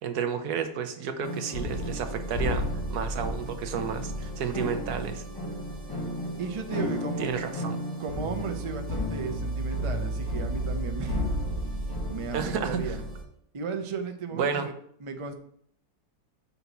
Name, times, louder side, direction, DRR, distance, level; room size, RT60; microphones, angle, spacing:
voice 1, 0.0-5.2 7.2-7.8 12.3-13.0 14.3-14.7, right 7 dB, 80° right, 8 dB, 1.3 m, -31 dB
sound 1, 1.2-13.2, equal, 15° left, 1.5 m, -32 dB
voice 2, 6.4-7.3 8.0-11.2 12.1-13.0 13.5-14.7 15.0-15.3, right 5 dB, 50° right, 6 dB, 0.3 m, -35 dB
5.7 x 4.1 x 5.7 m, 0.65 s
omnidirectional pair, 1.6 m